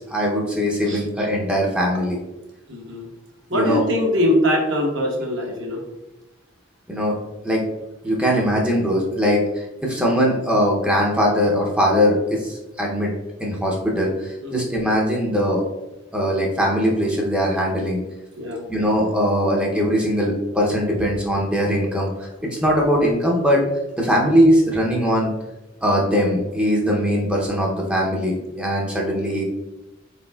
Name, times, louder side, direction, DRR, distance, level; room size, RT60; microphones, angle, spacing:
voice 1, 0.0-2.2 3.5-3.8 6.9-7.2 7.4-7.6 8.0-13.1 13.4-15.6 16.1-18.0 18.7-23.6 24.0-25.3 25.8-29.4, equal, 5° right, -2 dB, 0.5 m, -21 dB
voice 2, 2.7-3.1 3.5-5.8 14.4-14.6 18.4-18.7, left 1 dB, 70° right, -1 dB, 1.0 m, -22 dB
4.1 x 4.1 x 2.2 m, 0.99 s
head